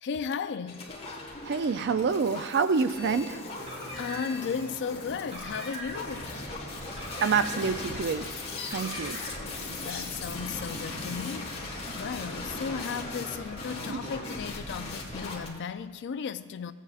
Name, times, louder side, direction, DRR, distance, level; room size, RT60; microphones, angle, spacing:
voice 1, 0.0-0.9 4.0-6.4 9.7-16.7, left 6 dB, 55° left, 0.4 m, -35 dB
sound 1, 0.7-15.5, left 2 dB, 25° left, 1.6 m, -38 dB
voice 2, 1.5-3.4 7.2-8.3 8.7-9.2 13.9-14.0, right 5 dB, 50° right, 0.4 m, -27 dB
Car, 3.5-4.5 5.2-6.2 6.8-7.9 8.6-9.5, right 1 dB, 30° right, 1.6 m, -42 dB
16.5 x 8.2 x 2.4 m
head